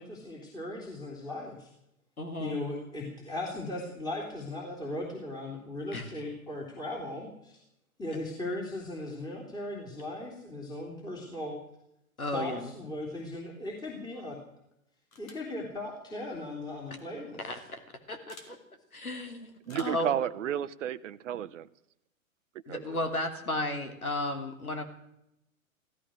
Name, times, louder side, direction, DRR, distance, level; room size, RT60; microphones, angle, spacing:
voice 1, 0.0-1.7 2.4-7.6 8.0-11.6 12.3-14.4 15.2-17.6, left 1 dB, 10° left, 1 dB, 3.3 m, -38 dB
voice 2, 2.2-2.6 5.9-6.1 12.2-12.7 17.4-17.6 18.1-18.6 18.9-20.1 22.7-24.8, left 1 dB, 85° left, 6 dB, 3.1 m, -34 dB
sound 1, 15.1-15.5 16.8-17.0 18.3-18.5 19.6-20.1, left 3 dB, 70° left, 3.8 m, -52 dB
voice 3, 19.7-21.7 22.7-23.0, right 10 dB, 60° right, 13 dB, 0.9 m, -32 dB
16.0 x 14.0 x 6.4 m, 0.81 s
figure-of-eight pair, 110°, 42 cm